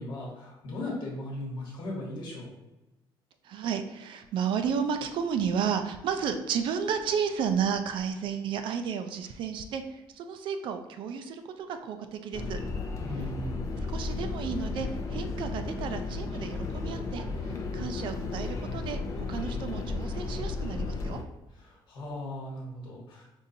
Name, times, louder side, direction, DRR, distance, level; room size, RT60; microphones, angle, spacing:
voice 1, 0.0-2.5 13.0-13.6 21.6-23.2, left 1 dB, 55° left, -3 dB, 1.4 m, -37 dB
voice 2, 3.4-12.6 13.9-19.0 19.3-21.2, right 7 dB, 60° right, 7 dB, 0.4 m, -32 dB
sound 1, 12.3-21.2, left 3 dB, 35° left, 0.5 m, -34 dB
5.3 x 2.5 x 2.7 m, 1.0 s
cardioid pair, 155°, 9 cm